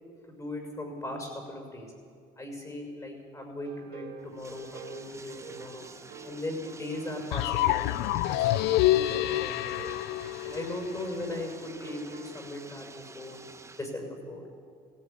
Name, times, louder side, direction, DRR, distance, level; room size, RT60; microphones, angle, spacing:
voice 1, 0.3-1.9 2.4-5.8 6.2-7.9 8.2-9.9 10.4-13.4 13.8-14.4, left 1 dB, 20° left, 2 dB, 6.5 m, -38 dB
sound 1, 3.6-12.4, right 8 dB, 70° right, 1.8 m, -48 dB
Bathtub (filling or washing), 4.2-14.0, right 3 dB, 15° right, 1.0 m, -50 dB
sound 2, 7.3-11.3, left 15 dB, 85° left, 0.5 m, -27 dB
17.5 x 17.0 x 8.7 m, 2.2 s
cardioid pair, 110°, 17 cm